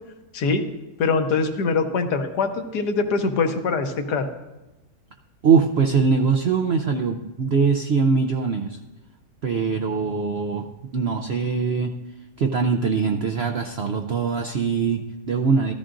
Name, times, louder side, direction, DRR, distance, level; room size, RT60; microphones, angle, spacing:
voice 1, 1.0-4.3, left 4 dB, 75° left, 6 dB, 1.5 m, -23 dB
voice 2, 5.4-8.8 9.4-12.0 12.4-15.7, right 5 dB, 70° right, 4 dB, 0.6 m, -22 dB
14.0 x 13.5 x 2.5 m, 1.1 s
omnidirectional pair, 1.8 m